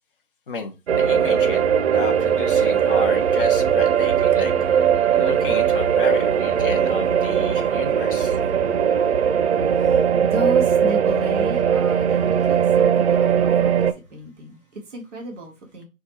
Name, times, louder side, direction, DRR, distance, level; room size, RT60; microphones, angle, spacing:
voice 1, 0.5-1.6 1.9-4.5 5.2-8.4, left 4 dB, 40° left, 0.9 m, -31 dB
sound 1, 0.9-13.9, right 8 dB, 50° right, 0.5 m, -19 dB
voice 2, 7.2-7.7 9.0-15.8, right 1 dB, ahead, 0.5 m, -34 dB
4.4 x 2.4 x 4.2 m
hypercardioid pair, 145°, 42 cm